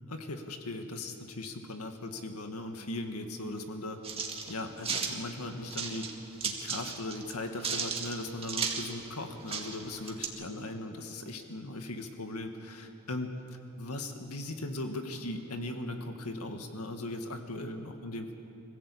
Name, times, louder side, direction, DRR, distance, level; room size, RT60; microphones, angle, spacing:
voice 1, 0.1-6.1 6.4-13.4 13.8-18.4, left 2 dB, 90° left, 5 dB, 1.9 m, -38 dB
sound 1, 4.0-5.1 5.7-6.1 6.4-7.3 7.6-8.9 9.2-9.3 9.5-10.3, right 5 dB, 25° right, 2.0 m, -34 dB
25.0 x 16.0 x 8.6 m, 3.0 s
head